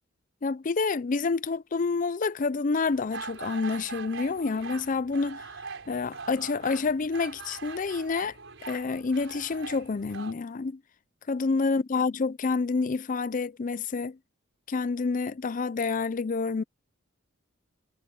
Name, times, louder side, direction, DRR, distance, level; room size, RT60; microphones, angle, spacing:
voice 1, 0.4-5.4 5.9-8.4 8.7-10.8 11.3-14.2 14.7-16.6, left 4 dB, 40° left, 0.5 m, -28 dB
sound 1, 2.8-10.3, right 4 dB, 65° right, 5.5 m, -42 dB
head